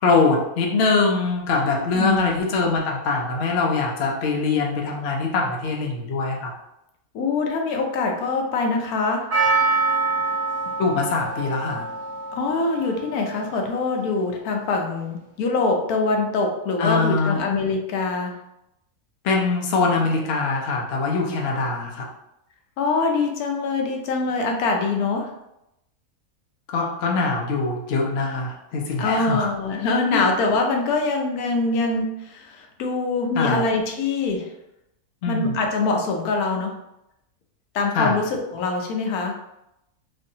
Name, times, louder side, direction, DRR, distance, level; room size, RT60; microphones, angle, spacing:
voice 1, 0.0-6.5 10.8-11.9 16.8-17.4 19.2-22.1 26.7-29.5 33.4-33.6 35.2-35.6 37.9-38.2, left 3 dB, 60° left, -1 dB, 0.6 m, -23 dB
voice 2, 1.9-2.3 7.1-9.2 12.3-18.4 22.8-25.3 29.0-34.5 35.3-36.7 37.7-39.4, left 3 dB, 80° left, 2 dB, 1.0 m, -24 dB
Percussion, 9.3-13.7 13.9-14.0, right 3 dB, 45° right, 1.3 m, -25 dB
3.1 x 2.6 x 2.7 m, 0.86 s
omnidirectional pair, 1.6 m